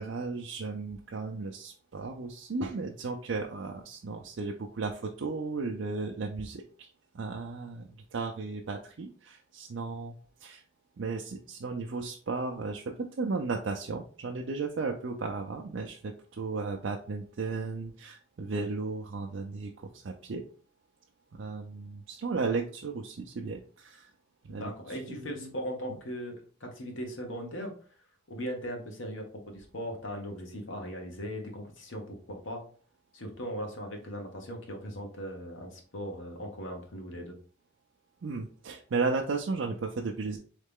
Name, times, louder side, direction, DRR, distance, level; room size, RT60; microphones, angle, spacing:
voice 1, 0.0-10.6 11.0-20.4 21.3-24.1 24.4-25.5 38.2-40.4, right 4 dB, 70° right, 1 dB, 0.5 m, -35 dB
voice 2, 24.5-27.7 28.3-32.7 33.1-37.4, equal, 85° left, 2 dB, 1.2 m, -39 dB
4.0 x 3.2 x 3.6 m, 0.42 s
head